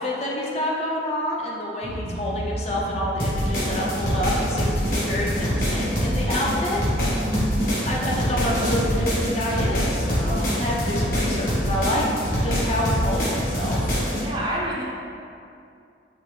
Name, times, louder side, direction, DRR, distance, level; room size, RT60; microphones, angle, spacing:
voice 1, 0.0-6.8 7.9-12.0 12.4-14.0, left 1 dB, 35° left, -3 dB, 0.5 m, -28 dB
sound 1, 1.8-13.1, equal, 85° right, 0.8 m, -33 dB
sound 2, 3.2-14.2, equal, 50° left, 1.3 m, -25 dB
voice 2, 7.1-7.7 14.1-14.8, equal, 25° right, -4 dB, 0.5 m, -28 dB
5.5 x 3.0 x 3.2 m, 2.5 s
head